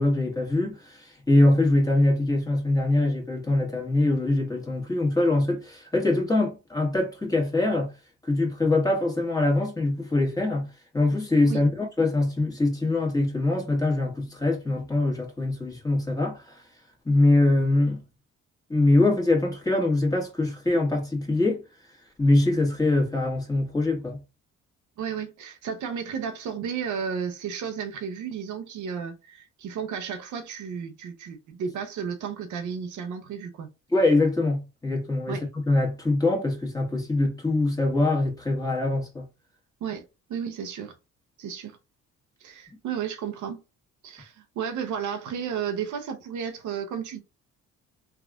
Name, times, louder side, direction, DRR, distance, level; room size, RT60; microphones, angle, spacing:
voice 1, 0.0-7.9 8.2-10.7 10.9-16.6 17.0-18.0 18.7-21.6 22.2-24.2 33.9-39.3 42.7-42.8, left 2 dB, 10° left, 1.3 m, -23 dB
voice 2, 25.0-33.7 35.3-35.4 39.8-40.0 40.3-40.9 41.4-41.8 42.4-43.6 44.0-47.2, right 7 dB, 70° right, 0.7 m, -33 dB
3.4 x 2.4 x 2.4 m
cardioid pair, 75°, 31 cm